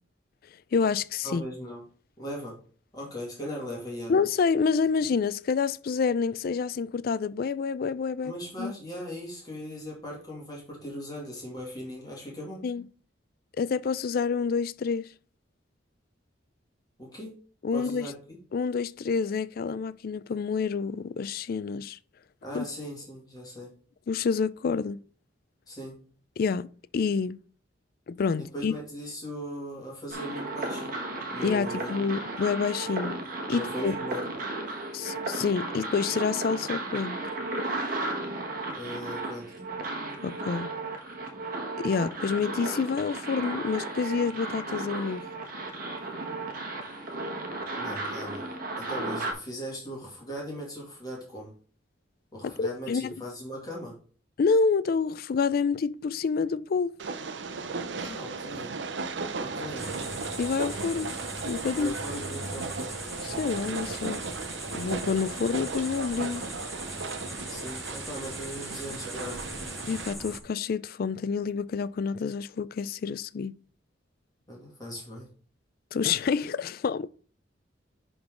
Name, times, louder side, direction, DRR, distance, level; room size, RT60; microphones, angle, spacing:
voice 1, 0.7-1.4 4.1-8.3 8.6-8.7 12.6-12.8 13.6-15.1 17.6-18.1 18.5-22.0 22.5-22.6 24.1-25.0 26.4-27.4 28.1-28.7 31.4-33.2 33.5-33.9 34.9-37.2 40.2-40.7 41.8-45.3 52.6-53.1 54.4-56.9 60.4-61.1 61.4-61.9 63.2-64.2 64.7-66.5 69.9-73.5 75.9-77.1, left 5 dB, 50° left, 0.3 m, -28 dB
voice 2, 1.2-1.8 2.2-2.6 2.9-4.1 8.2-12.6 17.0-17.4 17.7-18.4 22.4-23.7 25.7-26.0 28.4-31.0 31.3-31.9 33.5-34.2 38.7-39.5 47.8-48.4 48.8-51.5 52.3-54.0 57.9-58.7 59.4-60.1 61.7-63.0 67.5-69.5 74.5-75.3, equal, 20° left, 2.4 m, -39 dB
sound 1, 30.1-49.3, right 2 dB, 50° right, 1.4 m, -34 dB
Train, 57.0-70.1, right 4 dB, 70° right, 0.6 m, -36 dB
sound 2, 59.8-70.4, equal, ahead, 1.0 m, -40 dB
10.5 x 3.8 x 3.7 m
head